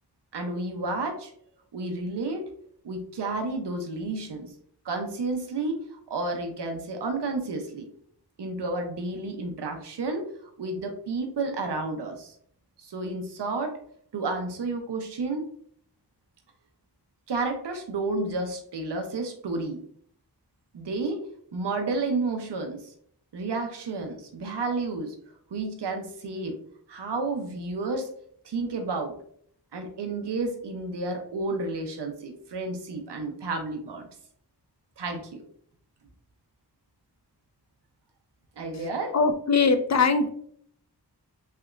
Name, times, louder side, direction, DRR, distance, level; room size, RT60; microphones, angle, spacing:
voice 1, 0.3-1.3 1.7-2.5 2.8-4.5 4.8-7.9 8.4-12.4 12.8-13.8 14.1-15.4 17.3-19.8 20.7-21.2 21.5-22.9 23.3-25.1 25.5-26.5 26.9-28.1 28.4-29.1 29.7-34.1 35.0-35.4 38.6-39.1, right 3 dB, 85° right, 4 dB, 0.6 m, -31 dB
voice 2, 39.1-40.3, left 4 dB, 45° left, 7 dB, 0.4 m, -21 dB
3.3 x 2.8 x 2.3 m, 0.62 s
wide cardioid pair, 45°, 40 cm